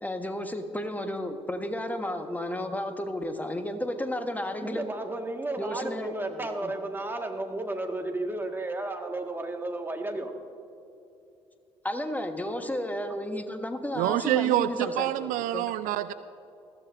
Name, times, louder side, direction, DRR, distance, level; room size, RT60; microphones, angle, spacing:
voice 1, 0.0-4.9 5.6-6.7 11.8-15.7, left 1 dB, 10° left, 7 dB, 1.3 m, -33 dB
voice 2, 4.6-10.4, right 2 dB, 15° right, 3 dB, 1.7 m, -33 dB
voice 3, 14.0-16.1, right 14 dB, 60° right, 14 dB, 0.4 m, -26 dB
20.5 x 14.5 x 2.6 m, 2.8 s
figure-of-eight pair, 50°, 15 cm